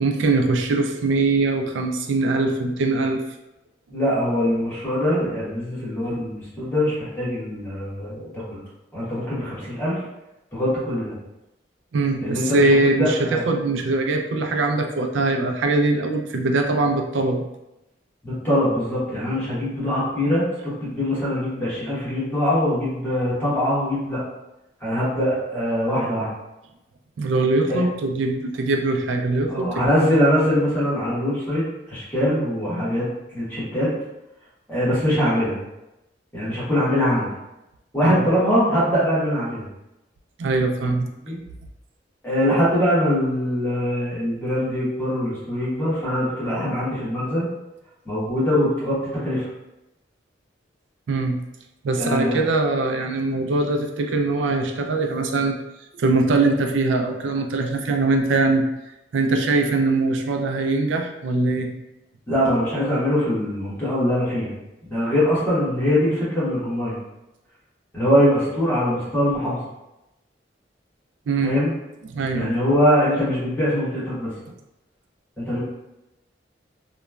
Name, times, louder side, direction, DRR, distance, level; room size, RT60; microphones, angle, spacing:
voice 1, 0.0-3.2 6.0-6.3 11.9-17.4 27.2-29.7 38.1-38.3 40.4-41.1 51.1-51.4 51.8-55.6 56.0-58.7 59.1-61.7 71.3-71.6 72.0-72.5, right 3 dB, 75° right, 4 dB, 0.4 m, -22 dB
voice 2, 3.9-8.6 8.9-10.0 10.5-11.1 12.2-13.4 18.2-24.2 24.8-26.3 27.7-27.8 29.5-33.9 34.7-35.6 36.3-37.3 37.9-39.6 41.2-41.4 42.2-47.5 48.0-49.5 52.0-52.4 62.3-64.5 64.8-67.0 67.9-69.6 71.4-71.7 72.3-74.3 75.4-75.6, equal, 10° left, -10 dB, 1.1 m, -22 dB
2.9 x 2.1 x 2.3 m, 0.94 s
head